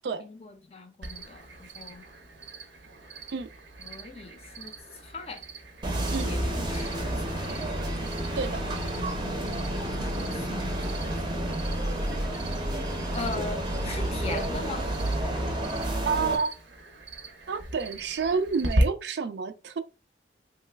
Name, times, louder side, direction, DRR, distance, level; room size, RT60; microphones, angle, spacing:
voice 1, 0.2-2.0 3.9-4.7 5.0-5.4 6.2-7.7 8.4-9.3 9.9-10.7 11.3-11.9 12.2-12.4 13.1-14.8, left 3 dB, 35° left, 0.5 m, -41 dB
Cricket, 1.0-18.8, right 1 dB, 90° right, 0.8 m, -40 dB
sound 1, 5.8-16.4, right 1 dB, 25° right, 0.6 m, -30 dB
voice 2, 16.0-16.5 17.5-19.8, right 5 dB, 65° right, 0.4 m, -29 dB
3.1 x 2.1 x 3.2 m
head